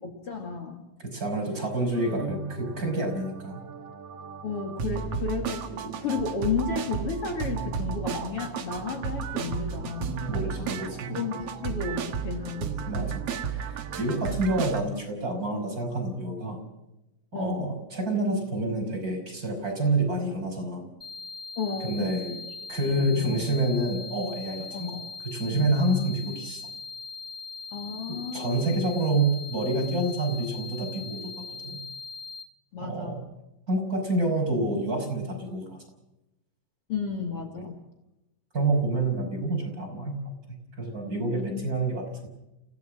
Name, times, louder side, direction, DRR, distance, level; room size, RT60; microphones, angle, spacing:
voice 1, 0.0-0.9 4.4-10.2 11.1-13.0 14.3-14.5 17.3-17.7 20.1-20.3 21.6-22.5 22.8-23.4 24.7-25.0 25.5-25.8 27.7-28.8 32.7-33.2 36.9-37.8 41.3-41.7, left 5 dB, 45° left, 3 dB, 3.0 m, -33 dB
voice 2, 1.0-3.6 10.3-11.2 12.9-16.6 17.3-20.9 21.8-22.3 22.7-26.6 28.3-31.3 31.6-31.8 32.8-33.2 33.7-35.8 38.5-40.2 40.8-42.3, right 2 dB, 25° right, 2 dB, 5.7 m, -28 dB
sound 1, 1.9-14.8, right 6 dB, 55° right, 2.3 m, -34 dB
sound 2, 21.0-32.4, left 4 dB, ahead, 1.4 m, -40 dB
28.5 x 17.5 x 6.3 m, 0.93 s
omnidirectional pair, 3.7 m